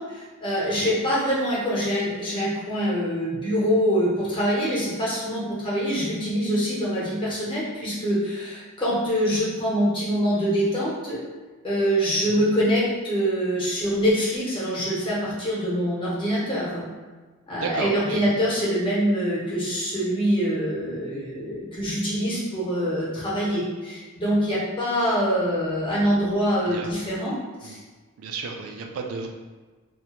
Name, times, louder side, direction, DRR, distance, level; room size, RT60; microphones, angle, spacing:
voice 1, 0.0-11.2 11.6-16.9 17.5-27.3 27.6-27.8, equal, 25° left, -7 dB, 0.7 m, -24 dB
voice 2, 17.5-18.3 26.6-26.9 27.6-27.8 28.2-29.3, right 4 dB, 80° right, 2 dB, 0.3 m, -33 dB
2.3 x 2.1 x 2.9 m, 1.3 s
head